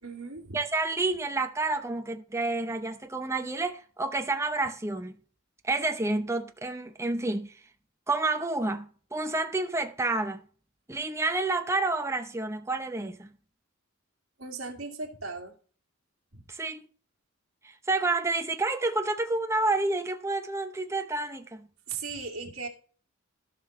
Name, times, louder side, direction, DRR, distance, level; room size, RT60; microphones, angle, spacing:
voice 1, 0.0-0.6 14.4-15.5 16.3-16.4 21.9-22.7, right 4 dB, 65° right, 2.3 m, -37 dB
voice 2, 0.5-5.1 5.6-7.6 8.1-10.4 10.9-13.3 16.5-16.9 17.6-21.7, right 2 dB, 15° right, 0.7 m, -29 dB
16.0 x 5.5 x 3.2 m
head